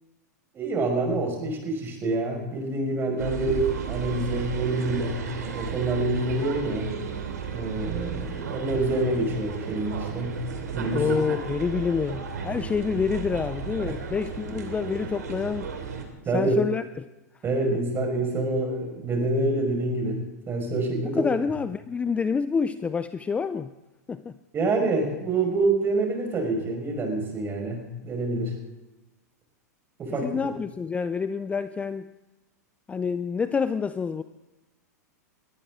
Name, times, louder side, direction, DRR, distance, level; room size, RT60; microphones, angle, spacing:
voice 1, 0.5-6.9 7.5-10.4 10.7-11.1 13.9-14.0 16.3-16.6 17.4-20.2 20.5-21.3 24.5-28.5 30.0-30.4, right 2 dB, 25° right, 2 dB, 5.3 m, -27 dB
sound 1, 3.2-16.0, right 6 dB, 75° right, 2.8 m, -34 dB
voice 2, 10.9-15.7 16.3-17.1 21.0-23.7 24.1-24.4 30.2-32.1 32.9-34.2, left 5 dB, 15° left, 13 dB, 0.5 m, -27 dB
22.0 x 14.0 x 3.8 m, 1.1 s
hypercardioid pair, 105°, 9 cm